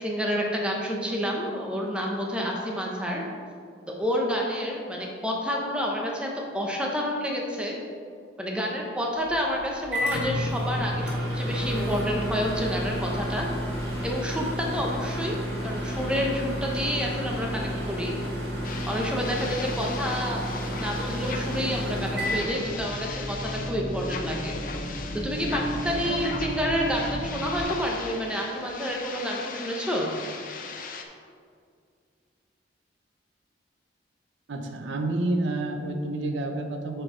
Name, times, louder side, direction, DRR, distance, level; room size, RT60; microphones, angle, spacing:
voice 1, 0.0-3.2 3.9-7.8 8.4-13.5 14.0-18.2 18.9-24.6 25.1-30.1, equal, 5° right, -1 dB, 0.8 m, -29 dB
Microwave oven, 9.2-23.3, equal, 60° right, 2.0 m, -31 dB
sound 1, 18.6-31.0, left 5 dB, 45° left, 0.6 m, -39 dB
sound 2, 21.5-27.6, right 1 dB, 35° right, 1.7 m, -34 dB
voice 2, 34.5-37.0, right 2 dB, 85° right, 5 dB, 0.7 m, -29 dB
7.6 x 4.6 x 5.0 m, 2.2 s
head